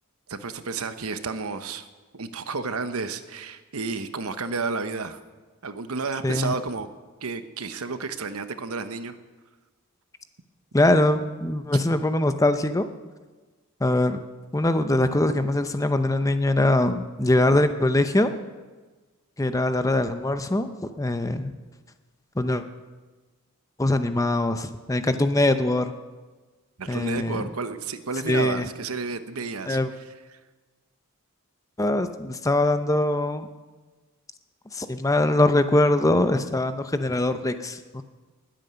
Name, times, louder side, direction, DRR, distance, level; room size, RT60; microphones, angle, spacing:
voice 1, 0.3-1.9 2.1-5.2 5.6-6.9 7.2-9.1 26.8-29.8, right 4 dB, 75° right, 10 dB, 1.0 m, -31 dB
voice 2, 6.2-6.5 10.7-12.9 13.8-14.2 14.5-18.3 19.4-20.7 21.0-21.5 22.4-22.6 23.8-25.9 26.9-27.5 28.3-28.7 29.7-29.9 31.8-33.5 34.7-38.0, left 1 dB, 15° left, 9 dB, 0.6 m, -22 dB
20.0 x 9.0 x 6.9 m, 1.3 s
head